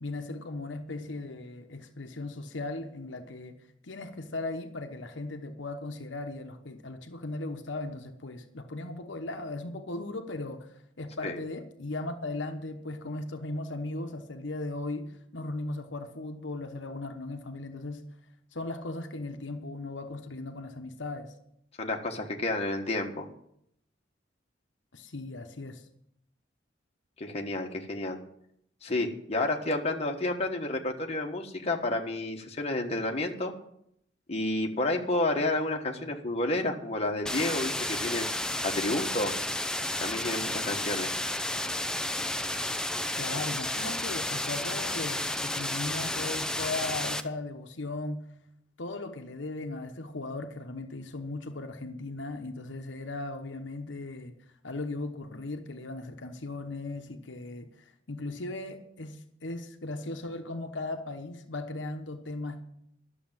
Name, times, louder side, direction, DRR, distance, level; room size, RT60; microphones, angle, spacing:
voice 1, 0.0-3.6 3.8-18.1 18.5-21.3 24.9-25.9 43.1-48.3 48.8-54.3 54.6-62.6, left 2 dB, 75° left, 1.1 m, -37 dB
voice 2, 21.8-23.3 27.2-28.2 28.8-33.5 34.3-38.3 38.6-39.3 40.0-41.1, left 2 dB, 35° left, 1.4 m, -30 dB
sound 1, 37.3-47.2, left 1 dB, 5° left, 0.6 m, -32 dB
11.5 x 7.0 x 9.0 m
head